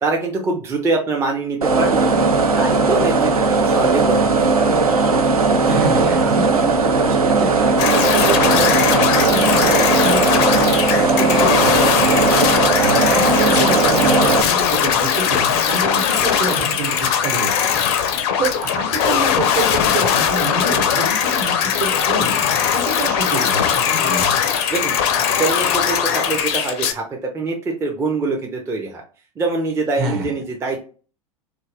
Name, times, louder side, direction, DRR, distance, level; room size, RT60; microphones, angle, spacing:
voice 1, 0.0-2.2 2.6-4.3 4.6-4.8 24.7-29.0 29.4-30.9, right 3 dB, 15° right, 0 dB, 0.5 m, -24 dB
sound 1, 1.6-14.4, right 3 dB, 80° right, 0.5 m, -17 dB
voice 2, 5.6-12.2 12.8-24.4 30.0-30.3, right 3 dB, 45° right, 3 dB, 1.0 m, -27 dB
sound 2, 7.8-26.9, left 8 dB, 45° left, 0.4 m, -19 dB
2.6 x 2.3 x 3.2 m, 0.38 s
figure-of-eight pair, 85°, 19 cm